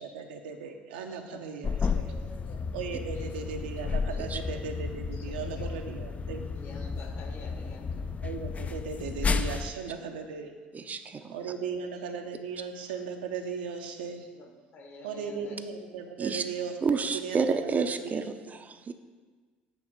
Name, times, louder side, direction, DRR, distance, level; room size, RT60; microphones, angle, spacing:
voice 1, 0.0-2.1 2.7-6.5 8.2-10.5 11.3-14.3 15.0-18.6, right 6 dB, 75° right, 4 dB, 0.7 m, -37 dB
voice 2, 1.1-1.4 1.7-2.6 3.1-3.3 3.5-4.6 5.1-5.2 5.5-5.8 6.5-8.1 9.6-9.8 11.7-12.2 14.3-15.6, left 2 dB, 50° left, 2 dB, 1.4 m, -49 dB
sound 1, 1.6-9.7, left 5 dB, 25° left, 0.4 m, -32 dB
voice 3, 10.7-11.3 16.2-16.4 16.8-18.9, right 5 dB, 30° right, 8 dB, 0.5 m, -30 dB
8.2 x 3.5 x 6.4 m, 1.4 s
hypercardioid pair, 60°, 5 cm